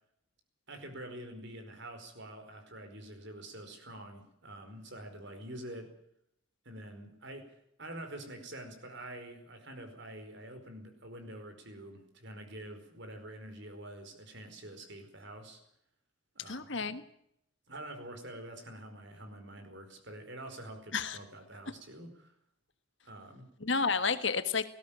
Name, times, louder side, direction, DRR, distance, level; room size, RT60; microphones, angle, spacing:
voice 1, 0.7-5.9 6.6-15.6 16.3-16.8 17.7-22.3 23.0-23.5, right 1 dB, 55° right, 7 dB, 4.9 m, -46 dB
voice 2, 16.5-17.0 20.9-21.2 23.6-24.7, left 5 dB, 60° left, 10 dB, 1.6 m, -31 dB
19.5 x 16.5 x 8.9 m, 0.74 s
head